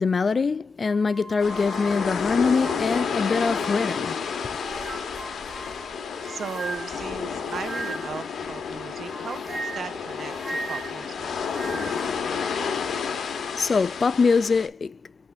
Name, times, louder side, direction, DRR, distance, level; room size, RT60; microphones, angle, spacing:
voice 1, 0.0-4.2 13.5-15.0, left 4 dB, 35° left, 0.4 m, -23 dB
sound 1, 0.8-4.1 4.6-8.3 9.1-12.1, right 2 dB, 30° right, 1.6 m, -38 dB
sound 2, 1.4-14.7, left 6 dB, 55° left, 1.3 m, -31 dB
voice 2, 6.2-11.2, right 6 dB, 50° right, 0.8 m, -37 dB
5.6 x 5.2 x 3.5 m
cardioid pair, 90°, 0 cm